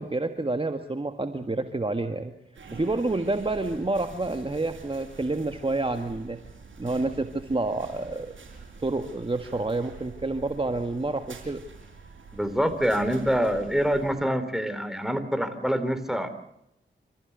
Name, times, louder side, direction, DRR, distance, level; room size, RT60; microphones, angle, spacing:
voice 1, 0.0-2.3 2.7-6.4 6.8-8.3 8.8-11.6, right 2 dB, 25° right, 7 dB, 1.6 m, -28 dB
sound 1, 2.5-14.1, right 4 dB, 85° right, 5.5 m, -46 dB
voice 2, 12.3-16.3, equal, ahead, 10 dB, 3.6 m, -26 dB
27.5 x 14.5 x 8.1 m, 0.81 s
cardioid pair, 50°, 20 cm